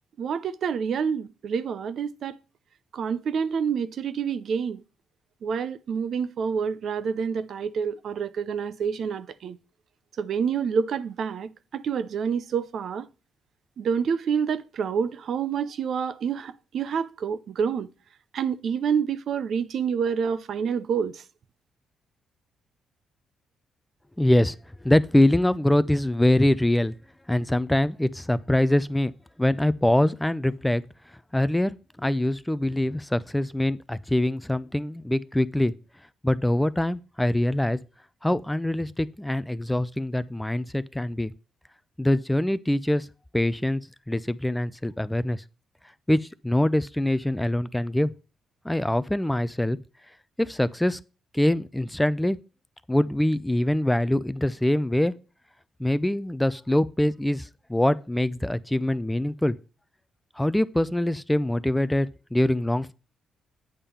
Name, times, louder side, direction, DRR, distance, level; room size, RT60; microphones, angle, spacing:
voice 1, 0.2-2.4 2.9-4.8 5.4-9.6 10.2-13.1 13.8-17.9 18.3-21.2, right 6 dB, 60° right, 0.5 m, -28 dB
voice 2, 24.2-24.6 24.8-26.9 27.3-29.1 29.4-30.8 31.3-35.7 36.2-37.8 38.2-41.3 42.0-43.1 43.3-43.8 44.1-45.4 46.1-48.1 48.6-49.8 50.4-51.0 51.3-52.4 52.9-55.1 55.8-59.6 60.4-62.9, left 1 dB, 5° left, 0.4 m, -24 dB
8.7 x 3.6 x 6.8 m
cardioid pair, 90°, 0 cm